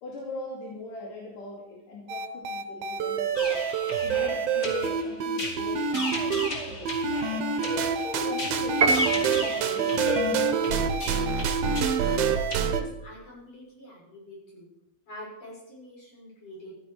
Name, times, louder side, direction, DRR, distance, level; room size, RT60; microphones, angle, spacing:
voice 1, 0.0-3.6 4.0-7.1 7.9-11.4 12.2-12.4, left 2 dB, 75° left, -4 dB, 4.1 m, -41 dB
sound 1, 2.1-6.5 6.9-12.8, right 6 dB, 65° right, 1.6 m, -27 dB
sound 2, 3.3-12.6, left 2 dB, 30° left, 3.0 m, -35 dB
Piano, 8.8-9.7, right 3 dB, 90° right, 0.8 m, -25 dB
voice 2, 12.7-14.7 15.0-16.7, equal, 45° left, -5 dB, 7.6 m, -45 dB
15.0 x 12.5 x 4.7 m, 0.87 s
omnidirectional pair, 3.8 m